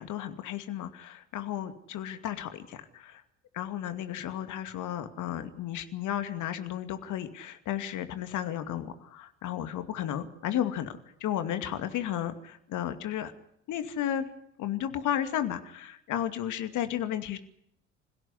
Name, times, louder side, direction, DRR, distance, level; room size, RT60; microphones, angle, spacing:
voice 1, 0.0-3.2 3.5-13.3 13.7-14.3 14.6-17.4, left 11 dB, 55° left, 9 dB, 2.4 m, -33 dB
27.5 x 16.5 x 9.9 m, 0.74 s
figure-of-eight pair, 55°, 36 cm